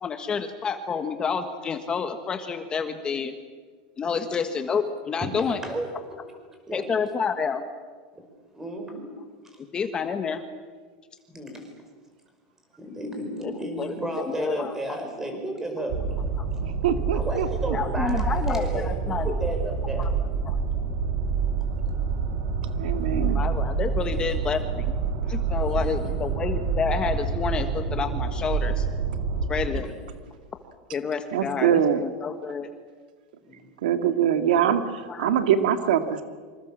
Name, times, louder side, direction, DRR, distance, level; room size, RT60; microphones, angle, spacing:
voice 1, 0.0-3.3 4.0-5.6 6.7-7.6 9.7-10.4 13.4-13.5 13.8-14.7 16.4-16.5 17.7-19.4 20.0-20.1 20.4-20.6 22.8-24.9 25.3-28.8 29.5-29.9 30.9-32.7 35.1-35.3, left 6 dB, 20° left, 7 dB, 1.4 m, -29 dB
voice 2, 4.0-4.5 5.2-5.9 6.7-6.9 8.1-8.2 8.5-9.1 11.3-11.7 12.8-16.0 17.1-20.1 22.6-22.7 24.0-24.3 25.6-26.2 29.5-29.9 33.4-33.6, right 1 dB, 10° right, 4 dB, 5.5 m, -34 dB
sound 1, 15.9-29.7, right 5 dB, 60° right, 4.5 m, -27 dB
voice 3, 16.6-17.8 22.7-23.4 31.3-32.0 33.8-36.2, right 9 dB, 90° right, 8 dB, 2.2 m, -23 dB
26.5 x 25.5 x 7.5 m, 1.5 s
supercardioid pair, 160°, 5 cm